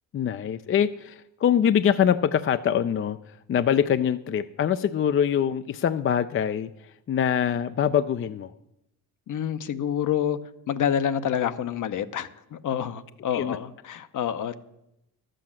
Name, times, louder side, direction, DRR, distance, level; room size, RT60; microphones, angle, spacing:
voice 1, 0.1-3.2 3.5-6.7 7.1-8.5 13.3-13.6, left 8 dB, 35° left, 12 dB, 0.4 m, -24 dB
voice 2, 9.3-10.4 10.7-14.6, left 9 dB, 60° left, 12 dB, 0.8 m, -28 dB
12.0 x 7.8 x 7.3 m, 0.84 s
cardioid pair, 105°, 35 cm